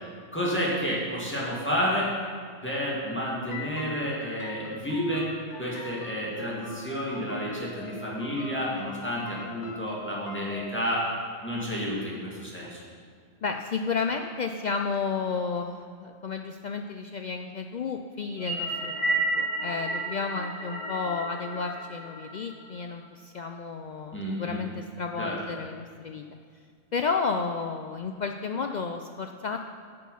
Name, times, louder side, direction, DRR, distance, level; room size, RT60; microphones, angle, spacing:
voice 1, 0.3-2.1 2.6-5.3 5.6-11.1 11.4-12.8 24.1-24.6 25.2-25.4, equal, 10° left, -6 dB, 2.1 m, -30 dB
sound 1, 3.5-10.9, left 3 dB, 55° left, 1.4 m, -44 dB
voice 2, 13.4-26.2 26.9-29.6, left 5 dB, 80° left, 4 dB, 0.4 m, -32 dB
sound 2, 18.3-22.8, right 2 dB, 60° right, 2.9 m, -31 dB
9.7 x 6.4 x 5.6 m, 2.1 s
omnidirectional pair, 1.3 m